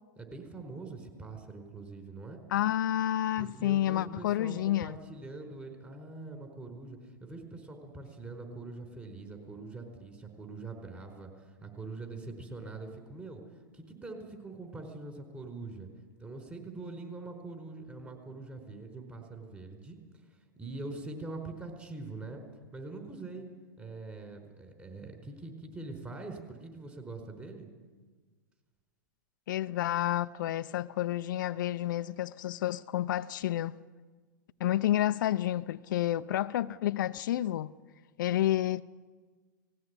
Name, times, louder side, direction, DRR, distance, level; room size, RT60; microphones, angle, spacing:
voice 1, 0.2-2.4 3.4-13.4 13.7-15.9 16.2-20.0 20.6-22.4 22.7-23.5 23.8-27.7, right 3 dB, 15° right, 4.6 m, -43 dB
voice 2, 2.5-5.0 29.5-33.7 34.6-37.7 38.2-38.8, left 13 dB, 70° left, 0.6 m, -30 dB
18.5 x 16.5 x 9.7 m
hypercardioid pair, 115°, 11 cm